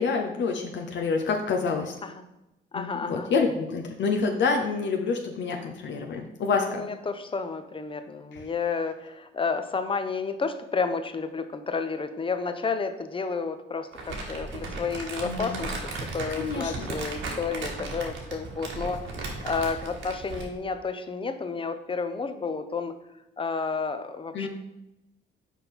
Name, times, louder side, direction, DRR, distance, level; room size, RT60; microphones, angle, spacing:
voice 1, 0.0-1.9 2.7-6.8 8.3-8.5 15.2-15.6 16.3-16.9 24.3-24.5, left 4 dB, 65° left, 2 dB, 0.8 m, -27 dB
voice 2, 2.7-3.3 6.7-19.0 19.4-23.0 23.4-24.5, left 5 dB, 25° left, 9 dB, 0.7 m, -31 dB
Crumpling crinkling, 13.9-20.6, right 3 dB, 75° right, 1.6 m, -36 dB
5.9 x 4.5 x 5.3 m, 0.91 s
cardioid pair, 90°, 20 cm